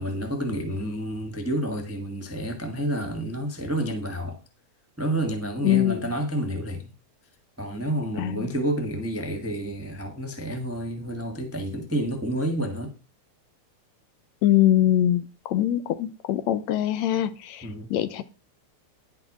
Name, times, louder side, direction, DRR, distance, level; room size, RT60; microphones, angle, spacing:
voice 1, 0.0-4.4 5.0-6.9 7.6-12.9 17.6-17.9, right 1 dB, 10° right, 0.7 m, -29 dB
voice 2, 5.6-6.1 8.2-8.5 14.4-18.2, left 12 dB, 75° left, 1.9 m, -23 dB
10.5 x 5.8 x 6.0 m
omnidirectional pair, 3.4 m